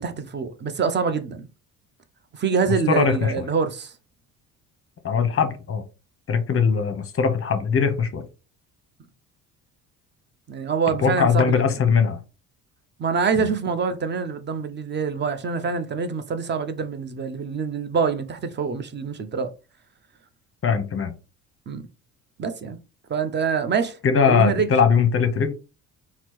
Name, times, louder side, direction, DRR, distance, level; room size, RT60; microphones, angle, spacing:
voice 1, 0.0-1.5 2.3-3.9 10.5-11.6 13.0-19.5 21.7-21.9 22.4-22.8 23.1-24.0 24.3-24.7, right 5 dB, 25° right, 0.6 m, -25 dB
voice 2, 2.7-3.5 5.0-5.8 6.3-8.2 11.0-12.2 13.4-13.5 20.6-21.1 24.0-25.5, left 6 dB, 30° left, 0.8 m, -21 dB
4.4 x 2.0 x 4.3 m
hypercardioid pair, 55°, 46 cm